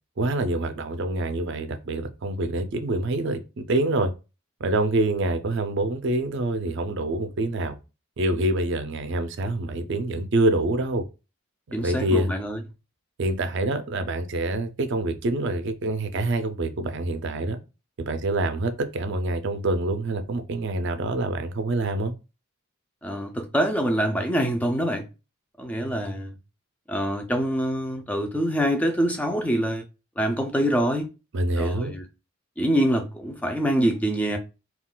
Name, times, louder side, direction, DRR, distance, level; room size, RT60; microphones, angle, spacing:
voice 1, 0.2-4.1 4.6-7.8 8.2-11.0 11.8-12.3 13.2-17.6 18.0-22.1 31.3-31.9, right 2 dB, 55° right, 0.4 m, -26 dB
voice 2, 11.7-12.6 23.0-25.1 25.6-26.3 26.9-29.8 30.2-31.1 31.6-32.1 32.6-34.4, equal, 5° left, 0.4 m, -25 dB
3.7 x 2.3 x 2.2 m
head